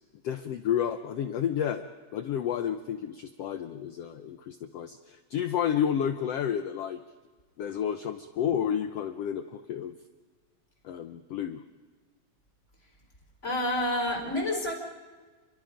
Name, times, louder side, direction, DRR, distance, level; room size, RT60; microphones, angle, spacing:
voice 1, 0.2-1.8 2.1-7.0 7.6-9.9 10.8-11.6, left 9 dB, 80° left, 9 dB, 1.4 m, -31 dB
voice 2, 13.4-14.7, left 1 dB, 20° left, 2 dB, 4.3 m, -28 dB
30.0 x 23.0 x 5.2 m, 1.4 s
omnidirectional pair, 3.9 m